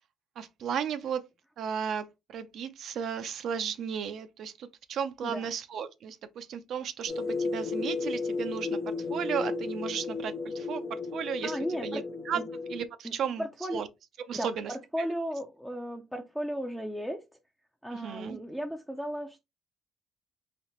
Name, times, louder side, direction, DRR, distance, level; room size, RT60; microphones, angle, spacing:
voice 1, 0.4-1.2 1.6-12.4 12.7-13.5 13.7-13.9 14.3-15.1 17.9-18.4, right 7 dB, 65° right, 0.5 m, -35 dB
sound 1, 7.1-12.9, left 3 dB, 50° left, 0.6 m, -34 dB
voice 2, 11.4-12.0 12.3-12.4 13.0-13.1 13.4-13.8 14.3-17.2 17.8-19.4, equal, ahead, 0.5 m, -35 dB
4.1 x 2.9 x 3.0 m
cardioid pair, 100°, 0 cm